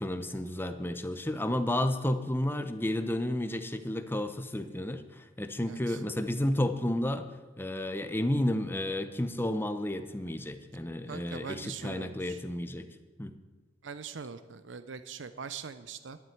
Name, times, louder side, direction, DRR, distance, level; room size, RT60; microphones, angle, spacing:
voice 1, 0.0-7.3 7.6-12.9 13.2-13.3, left 1 dB, 10° left, 8 dB, 0.8 m, -31 dB
voice 2, 5.7-6.0 11.1-12.4 13.8-16.2, right 6 dB, 85° right, 12 dB, 0.6 m, -42 dB
12.0 x 7.6 x 9.3 m, 1.3 s
head